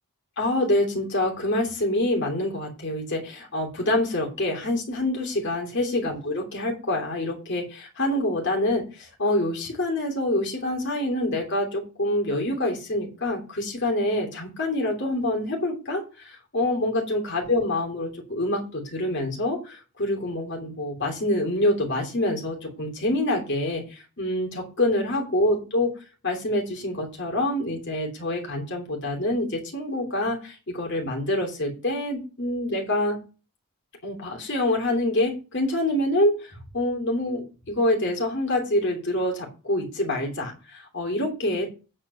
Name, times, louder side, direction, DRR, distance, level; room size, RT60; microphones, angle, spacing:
voice 1, 0.4-25.9 26.2-33.2 34.0-41.7, left 1 dB, 50° left, 1 dB, 2.9 m, -26 dB
8.9 x 4.4 x 6.2 m, 0.33 s
head